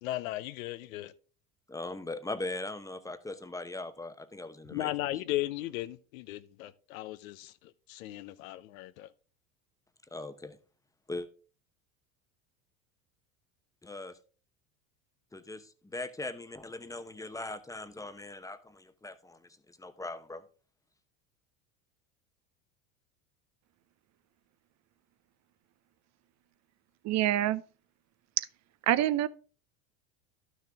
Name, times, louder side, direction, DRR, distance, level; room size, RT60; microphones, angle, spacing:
voice 1, 0.0-1.1 4.7-9.1, left 16 dB, 75° left, 0.7 m, -36 dB
voice 2, 1.7-4.9 10.1-10.6 11.1-11.3 13.8-14.2 15.3-19.4 19.8-20.4, left 2 dB, 10° left, 0.9 m, -40 dB
voice 3, 27.0-27.6 28.4-28.5 28.9-29.3, right 13 dB, 40° right, 0.6 m, -26 dB
11.5 x 6.3 x 3.4 m
hypercardioid pair, 90°, 41 cm